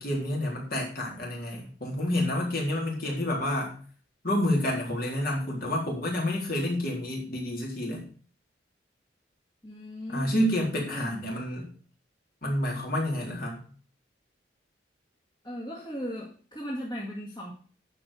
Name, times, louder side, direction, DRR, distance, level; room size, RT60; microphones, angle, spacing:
voice 1, 0.0-3.8 4.2-8.0 10.1-11.7 12.4-13.6, left 1 dB, 50° left, -2 dB, 3.9 m, -29 dB
voice 2, 9.6-10.3 10.9-11.1 15.4-17.5, equal, 25° left, -5 dB, 2.3 m, -37 dB
11.0 x 5.6 x 6.6 m, 0.42 s
head